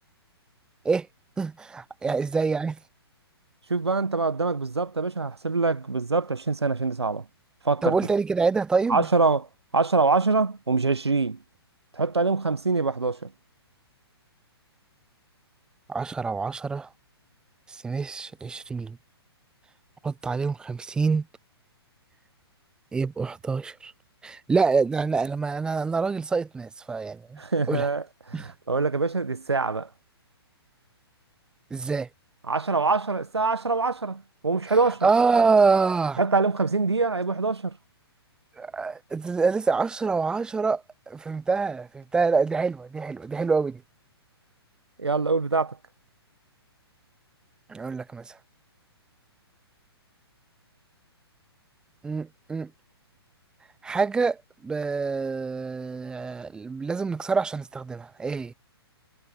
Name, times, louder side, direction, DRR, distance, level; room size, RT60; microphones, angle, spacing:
voice 1, 1.4-2.8 7.8-9.1 15.9-16.9 17.7-19.0 20.0-21.2 22.9-23.9 24.2-27.4 27.7-27.9 28.3-28.5 31.7-32.1 34.7-34.8 35.0-36.2 38.6-43.8 47.7-48.3 52.0-52.7 53.8-58.5, right 4 dB, 5° right, 0.4 m, -26 dB
voice 2, 3.7-7.2 7.6-7.9 8.9-9.5 9.7-11.4 12.0-13.2 27.4-29.9 32.5-35.1 36.2-37.7 45.0-45.8, right 4 dB, 80° right, 1.4 m, -24 dB
figure-of-eight pair, 120°, 14 cm